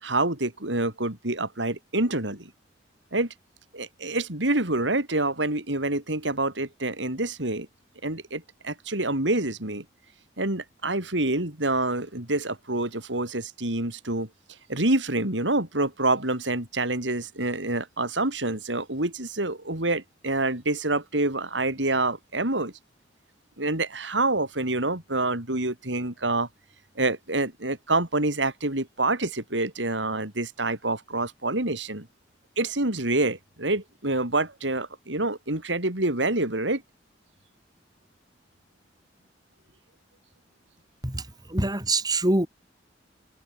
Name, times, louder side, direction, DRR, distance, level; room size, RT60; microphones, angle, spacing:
voice 1, 0.0-2.5 3.1-3.3 3.7-7.7 8.0-9.8 10.4-14.3 14.7-22.7 23.6-26.5 27.0-32.1 32.6-36.8, right 2 dB, 85° right, 5.5 m, -27 dB
voice 2, 41.0-42.5, right 2 dB, 20° right, 4.5 m, -25 dB
head